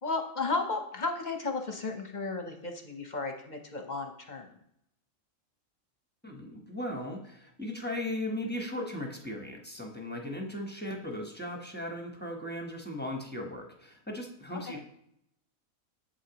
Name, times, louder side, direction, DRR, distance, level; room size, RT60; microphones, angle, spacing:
voice 1, 0.0-4.6 14.7-14.8, left 3 dB, 40° left, 4 dB, 0.8 m, -34 dB
voice 2, 6.2-14.8, left 1 dB, 10° left, 0 dB, 0.8 m, -37 dB
8.2 x 7.5 x 2.9 m, 0.75 s
omnidirectional pair, 1.4 m